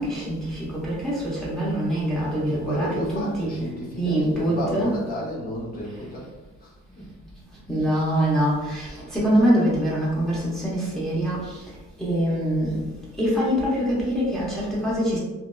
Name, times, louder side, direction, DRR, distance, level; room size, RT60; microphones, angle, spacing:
voice 1, 0.0-3.5 4.0-4.9 7.7-11.6 12.0-12.8 13.2-15.2, equal, ahead, -8 dB, 0.9 m, -24 dB
voice 2, 2.5-6.3 6.6-7.1, equal, 30° left, -6 dB, 1.1 m, -32 dB
2.8 x 2.0 x 2.2 m, 1.1 s
cardioid pair, 90°, 30 cm